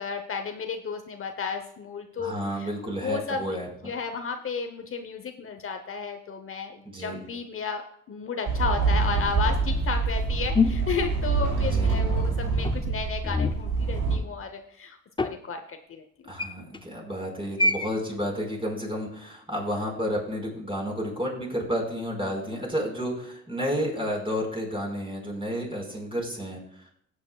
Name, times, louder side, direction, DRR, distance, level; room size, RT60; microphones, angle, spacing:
voice 1, 0.0-3.6 3.8-16.3, left 5 dB, 45° left, 6 dB, 0.9 m, -33 dB
voice 2, 2.2-3.9 6.8-7.2 11.7-12.0 16.3-26.9, equal, 20° right, -1 dB, 4.7 m, -31 dB
sound 1, 8.5-14.2, right 4 dB, 80° right, 3.7 m, -25 dB
sound 2, 10.5-11.8 12.6-13.7 15.2-15.4 16.4-16.8 17.6-17.9, left 3 dB, 15° left, 0.6 m, -26 dB
17.0 x 8.6 x 2.3 m, 0.73 s
cardioid pair, 90°, 30 cm